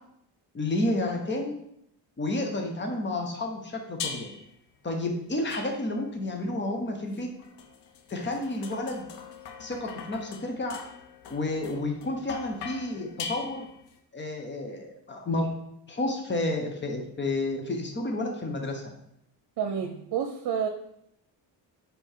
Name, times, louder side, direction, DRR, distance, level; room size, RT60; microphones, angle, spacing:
voice 1, 0.5-1.5 2.2-4.3 4.8-7.3 8.1-9.0 9.6-10.8 11.3-13.7 14.1-15.5 15.9-18.8, left 2 dB, 25° left, 3 dB, 1.2 m, -30 dB
sound 1, 4.0-4.5 5.5-6.2 7.1-14.0, left 5 dB, 80° left, 0.9 m, -41 dB
voice 2, 19.6-20.7, right 7 dB, 70° right, 5 dB, 0.8 m, -29 dB
5.3 x 4.4 x 5.6 m, 0.75 s
cardioid pair, 115°, 41 cm